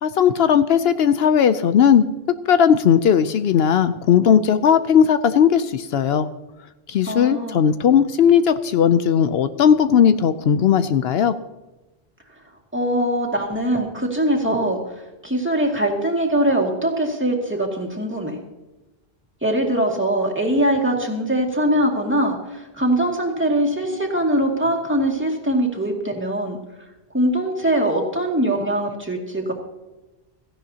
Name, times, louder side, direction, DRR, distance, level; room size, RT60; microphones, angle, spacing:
voice 1, 0.0-2.0 2.5-6.3 6.9-11.3, left 8 dB, 75° left, 11 dB, 0.8 m, -17 dB
voice 2, 7.0-7.6 12.7-18.4 19.4-26.6 27.1-29.5, right 1 dB, 10° right, -1 dB, 2.2 m, -22 dB
17.0 x 14.5 x 2.8 m, 1.1 s
omnidirectional pair, 1.1 m